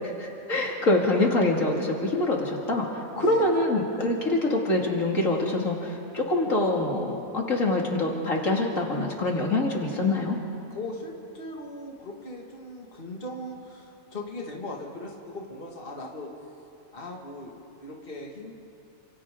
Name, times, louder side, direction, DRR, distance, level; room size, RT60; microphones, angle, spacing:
voice 1, 0.0-10.4, left 2 dB, 70° left, -1 dB, 2.7 m, -25 dB
voice 2, 3.1-3.5 10.7-16.3 16.9-18.5, left 1 dB, 40° left, -1 dB, 2.3 m, -39 dB
29.5 x 26.5 x 3.8 m, 2.9 s
omnidirectional pair, 1.4 m